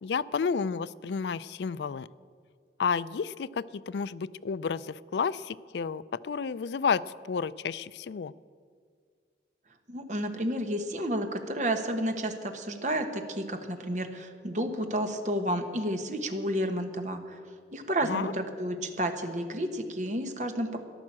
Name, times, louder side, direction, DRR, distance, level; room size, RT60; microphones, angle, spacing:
voice 1, 0.0-2.1 2.8-8.3 18.0-18.3, left 5 dB, 75° left, 17 dB, 0.4 m, -31 dB
voice 2, 9.9-17.4 17.7-20.8, right 1 dB, 40° right, 6 dB, 1.3 m, -31 dB
14.0 x 10.5 x 7.4 m, 2.1 s
head